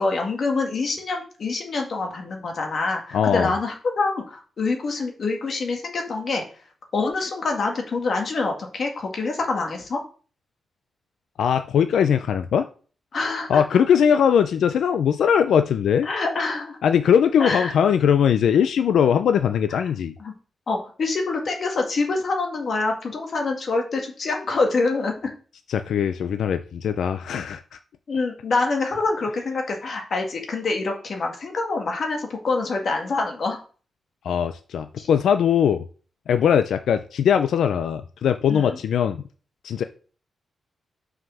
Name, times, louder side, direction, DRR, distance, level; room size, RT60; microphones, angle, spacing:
voice 1, 0.0-6.4 6.9-10.0 13.1-13.8 16.1-16.8 17.4-17.7 20.2-20.3 20.7-25.3 28.1-33.6 35.0-35.1 38.5-38.8, left 3 dB, 45° left, 1.8 m, -26 dB
voice 2, 3.1-3.5 11.4-12.7 13.5-16.1 16.8-20.1 25.7-27.8 34.2-35.8 36.3-39.2 39.6-39.8, left 8 dB, 90° left, 0.5 m, -20 dB
6.1 x 4.9 x 6.2 m
wide cardioid pair, 175°, 0 cm